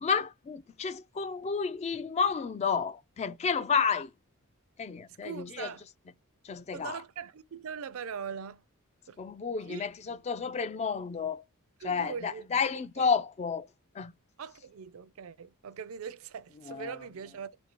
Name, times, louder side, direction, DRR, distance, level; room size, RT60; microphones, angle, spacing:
voice 1, 0.0-4.1 4.8-5.7 6.4-7.0 9.2-11.4 11.8-13.7 13.9-14.1 16.7-16.9, left 5 dB, 30° left, 0.3 m, -31 dB
voice 2, 5.1-5.8 6.7-8.6 9.1-9.2 9.7-9.8 11.8-12.5 13.0-13.1 14.4-17.5, right 6 dB, 65° right, 0.4 m, -41 dB
3.6 x 2.6 x 4.4 m
head